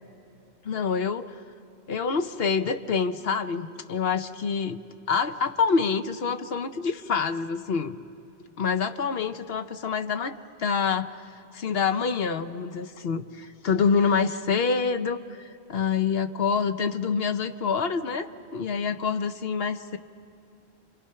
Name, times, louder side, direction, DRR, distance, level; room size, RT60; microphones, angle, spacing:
voice 1, 0.6-1.3 1.9-4.8 5.1-7.9 8.6-20.0, left 5 dB, 65° left, 9 dB, 1.0 m, -27 dB
28.5 x 24.5 x 5.7 m, 2.7 s
omnidirectional pair, 1.1 m